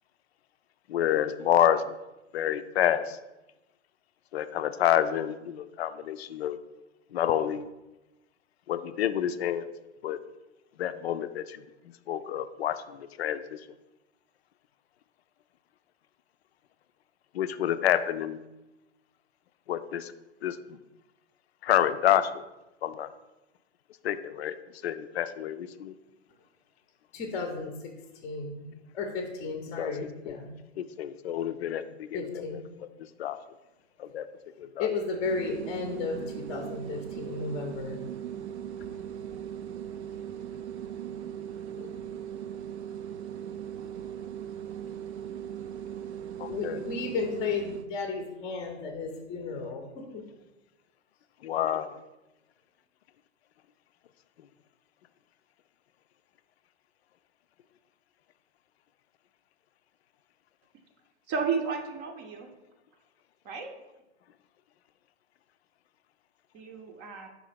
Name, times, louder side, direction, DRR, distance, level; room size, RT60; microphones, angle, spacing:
voice 1, 0.9-1.8 2.3-3.2 4.3-6.6 7.1-7.7 8.7-9.7 10.0-10.2 10.8-11.6 12.1-13.6 17.3-18.4 19.7-20.1 20.4-20.6 21.6-22.4 22.8-23.1 24.0-24.5 24.8-25.9 29.8-29.9 30.2-30.4 30.8-32.6 33.2-33.4 34.0-34.3 34.6-34.9 41.8-41.9 46.4-46.8 51.4-52.0, left 10 dB, 60° left, 12 dB, 0.5 m, -28 dB
voice 2, 27.1-27.9 28.2-28.6 28.9-30.5 32.1-32.6 34.8-38.0 44.8-44.9 46.5-49.8 50.1-50.2, left 4 dB, 20° left, 3 dB, 0.7 m, -34 dB
sound 1, 35.2-47.9, right 9 dB, 65° right, 0.5 m, -39 dB
voice 3, 61.3-62.5 63.4-63.7 66.5-67.3, right 5 dB, 30° right, 4 dB, 0.7 m, -32 dB
5.0 x 3.7 x 5.0 m, 1.0 s
figure-of-eight pair, 115°, 36 cm